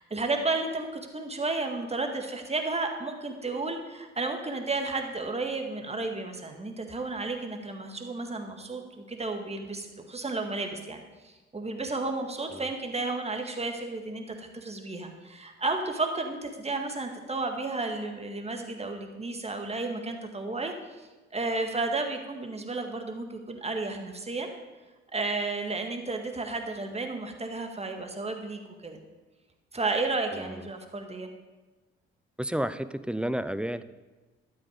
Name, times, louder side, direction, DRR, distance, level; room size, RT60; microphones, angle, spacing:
voice 1, 0.0-24.5 25.1-29.0 29.7-31.3, right 3 dB, 20° right, 4 dB, 1.9 m, -32 dB
voice 2, 30.3-30.7 32.4-33.8, right 1 dB, 5° right, 14 dB, 0.5 m, -31 dB
12.5 x 8.0 x 5.1 m, 1.2 s
figure-of-eight pair, 45°, 30 cm